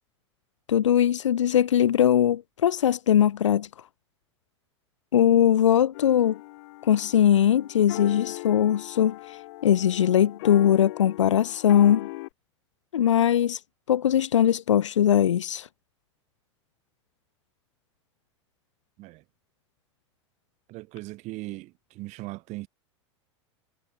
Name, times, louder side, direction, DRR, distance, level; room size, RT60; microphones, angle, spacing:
voice 1, 0.7-3.7 5.1-6.4 6.9-12.1 12.9-13.6 13.9-15.7, left 10 dB, 80° left, 1.2 m, -21 dB
sound 1, 5.9-12.3, left 22 dB, 60° left, 6.6 m, -40 dB
voice 2, 20.7-22.7, right 20 dB, 50° right, 4.2 m, -39 dB
hypercardioid pair, 90°, 15 cm